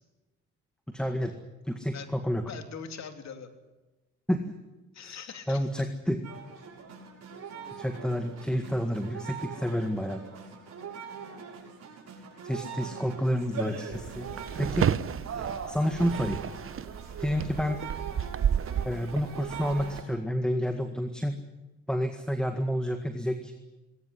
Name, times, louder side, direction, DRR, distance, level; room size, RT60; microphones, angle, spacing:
voice 1, 0.9-1.4 1.6-2.4 4.3-4.4 5.0-5.1 5.5-6.2 7.8-10.2 12.4-14.3 14.6-14.9 15.7-16.4 17.2-17.8 18.8-21.4 21.9-23.5, equal, 5° left, 6 dB, 1.9 m, -29 dB
voice 2, 2.4-3.5 4.9-5.9, left 6 dB, 65° left, 6 dB, 3.2 m, -42 dB
sound 1, 6.2-20.0, right 6 dB, 60° right, 6.8 m, -41 dB
sound 2, 13.9-20.0, right 8 dB, 45° right, 0.9 m, -32 dB
21.0 x 18.0 x 10.0 m, 1.1 s
cardioid pair, 90°, 30 cm